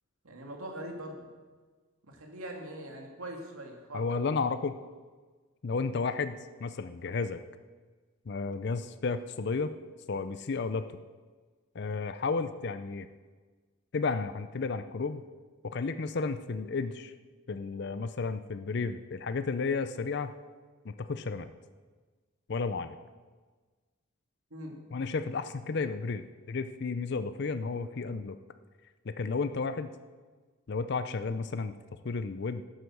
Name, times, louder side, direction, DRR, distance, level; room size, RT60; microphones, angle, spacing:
voice 1, 0.2-1.3 2.1-4.2 24.5-24.8, right 1 dB, 90° right, 1 dB, 2.2 m, -42 dB
voice 2, 3.9-4.8 5.6-7.4 8.3-9.7 10.1-11.0 11.7-13.1 13.9-15.2 15.6-17.1 17.5-20.3 20.8-21.5 22.5-22.9 24.9-28.4 29.1-29.9 30.7-31.7 32.0-32.6, left 4 dB, 50° left, 11 dB, 0.5 m, -32 dB
12.5 x 8.0 x 6.2 m, 1.4 s
head